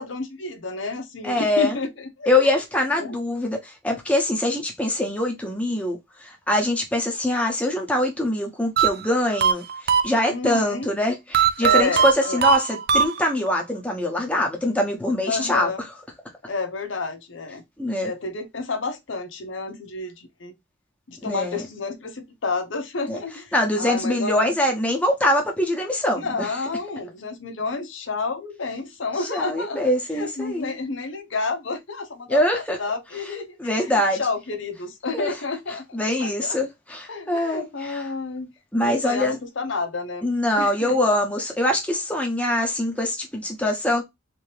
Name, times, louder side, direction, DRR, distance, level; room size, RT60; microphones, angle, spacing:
voice 1, 0.0-2.5 2.9-3.2 10.3-10.9 11.6-12.5 15.3-15.8 16.5-17.6 18.0-20.5 21.1-24.5 26.1-29.8 30.1-35.9 36.2-36.6 37.1-38.5 38.8-41.0, left 3 dB, 75° left, 0.8 m, -30 dB
voice 2, 1.2-1.8 2.3-15.7 17.8-18.1 21.2-21.6 23.1-23.2 23.5-26.5 29.3-30.7 32.3-32.8 33.6-34.2 35.1-35.3 35.9-38.0 38.7-39.3 40.2-44.0, left 1 dB, 5° left, 1.0 m, -23 dB
sound 1, 8.8-10.6 11.3-13.6, right 7 dB, 50° right, 0.4 m, -21 dB
3.4 x 2.9 x 3.3 m
head